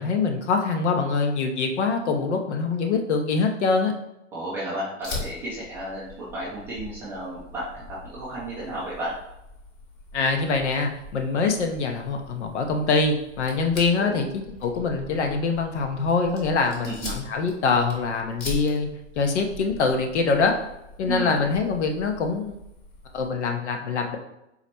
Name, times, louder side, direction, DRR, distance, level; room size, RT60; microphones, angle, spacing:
voice 1, 0.0-3.9 10.1-18.9 19.2-20.5 21.0-22.5 23.1-24.2, left 4 dB, 65° left, 4 dB, 0.8 m, -24 dB
voice 2, 4.3-9.1 13.9-14.2 16.8-17.1 21.0-21.4, right 1 dB, 5° right, -9 dB, 0.3 m, -33 dB
Fire, 5.0-23.3, left 2 dB, 25° left, 0.9 m, -42 dB
4.0 x 2.1 x 4.3 m, 0.87 s
hypercardioid pair, 130°, 37 cm